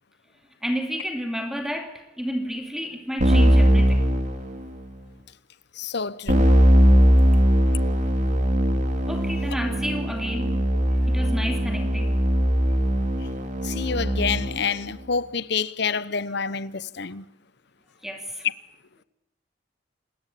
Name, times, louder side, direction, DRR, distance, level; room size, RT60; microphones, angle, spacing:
voice 1, 0.6-4.0 9.1-10.6 11.1-12.2 18.0-18.5, equal, 5° right, 2.6 m, -30 dB
Keyboard (musical), 3.2-4.9 6.3-14.7, equal, 40° right, 3.3 m, -20 dB
voice 2, 5.7-6.5 13.6-17.2, left 5 dB, 65° left, 0.9 m, -28 dB
29.0 x 20.5 x 8.5 m
head